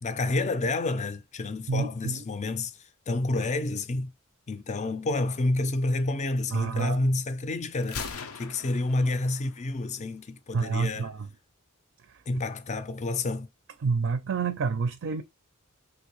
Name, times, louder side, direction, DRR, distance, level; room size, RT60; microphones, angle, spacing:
voice 1, 0.0-2.7 3.1-4.1 4.5-8.1 8.3-11.1 12.3-13.5, left 2 dB, 35° left, 0.5 m, -29 dB
voice 2, 1.7-2.2 6.5-7.0 10.5-11.3 12.1-12.2 13.8-15.2, right 5 dB, 60° right, 0.4 m, -28 dB
Gunshot gunfire, 7.8-9.8, left 5 dB, 90° left, 0.6 m, -40 dB
3.5 x 2.6 x 2.9 m
head